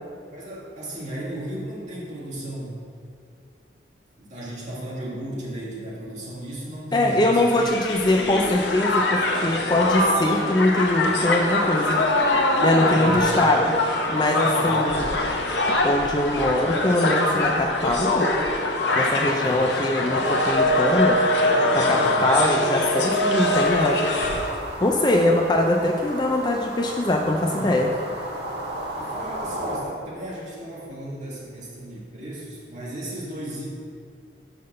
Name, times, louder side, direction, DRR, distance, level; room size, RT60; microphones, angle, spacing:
voice 1, 0.3-2.8 4.2-7.6 12.9-13.2 14.6-14.9 19.2-19.7 21.9-22.2 27.5-28.2 28.9-33.7, right 1 dB, 40° right, -7 dB, 2.1 m, -35 dB
voice 2, 6.9-12.0 12.6-13.7 14.1-15.1 15.8-18.3 19.0-21.2 21.7-24.1 24.8-27.9, left 1 dB, 25° left, 2 dB, 0.4 m, -22 dB
Crowd, 7.2-24.6, left 1 dB, 80° left, 0.9 m, -23 dB
sound 1, 23.4-29.8, right 1 dB, 70° right, 1.8 m, -34 dB
5.8 x 5.4 x 6.4 m, 2.3 s
head